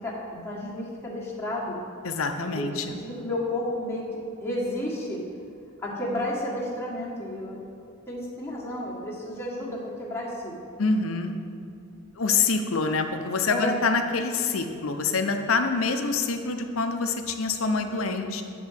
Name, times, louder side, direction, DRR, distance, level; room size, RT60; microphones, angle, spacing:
voice 1, 0.0-1.8 2.5-4.1 4.4-5.2 5.8-7.6 8.1-10.6 13.5-13.7, left 1 dB, 10° left, -6 dB, 1.5 m, -32 dB
voice 2, 2.0-3.0 10.8-11.4 12.2-18.4, left 4 dB, 75° left, 6 dB, 0.7 m, -26 dB
9.3 x 3.9 x 6.4 m, 2.6 s
head